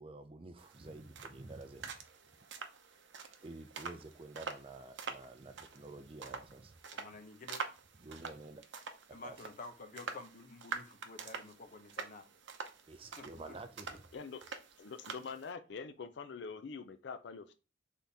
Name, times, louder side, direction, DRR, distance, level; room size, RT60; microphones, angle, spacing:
voice 1, 0.0-1.9 3.4-6.7 8.0-8.6 9.2-9.3 12.9-14.0, right 2 dB, 30° right, 0.5 m, -49 dB
sound 1, 0.6-15.5, right 5 dB, 70° right, 0.7 m, -47 dB
voice 2, 6.9-7.6 9.1-12.2 13.2-13.3, left 3 dB, 45° left, 0.8 m, -50 dB
voice 3, 14.8-17.5, left 5 dB, 60° left, 0.4 m, -44 dB
4.1 x 3.6 x 3.4 m
head